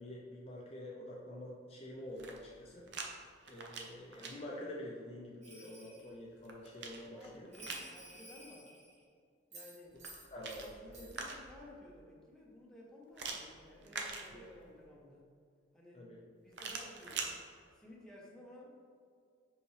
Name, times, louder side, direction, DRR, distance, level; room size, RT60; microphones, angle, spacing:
voice 1, 0.0-2.9 3.5-7.5 10.3-11.1 14.3-14.4 15.9-16.2, left 1 dB, 30° left, -3 dB, 0.6 m, -47 dB
sound 1, 2.0-3.1 3.4-4.3 6.0-7.9 9.9-11.7 13.1-14.7 16.5-17.3, right 4 dB, 65° right, 0.7 m, -44 dB
Bell, 5.4-6.1 7.5-9.0 9.5-10.7 10.9-11.2, right 1 dB, 35° right, 1.4 m, -53 dB
voice 2, 7.0-8.7 9.5-10.0 10.6-15.3 15.7-16.0 16.4-17.3 17.7-18.8, left 1 dB, 5° left, -4 dB, 1.0 m, -55 dB
5.7 x 5.1 x 3.3 m, 2.2 s
head